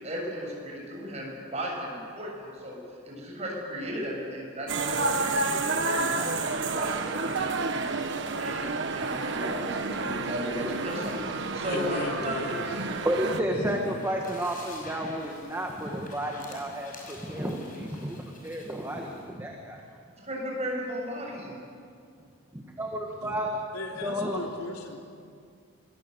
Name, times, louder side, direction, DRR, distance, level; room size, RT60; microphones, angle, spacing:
voice 1, 0.0-2.8 3.0-7.9 8.4-12.4 12.9-13.0 20.2-21.6, equal, 30° right, -1 dB, 7.0 m, -35 dB
sound 1, 4.7-13.4, right 3 dB, 55° right, 1.4 m, -30 dB
voice 2, 11.6-12.6 13.5-14.1 23.2-23.4 23.7-25.0, left 2 dB, 85° left, 1 dB, 3.1 m, -37 dB
voice 3, 13.0-19.8 22.5-23.5 24.0-24.4, right 1 dB, 10° right, 0 dB, 1.7 m, -32 dB
sound 2, 13.5-19.3, left 2 dB, 40° left, 5.9 m, -48 dB
25.5 x 20.5 x 8.1 m, 2.3 s
head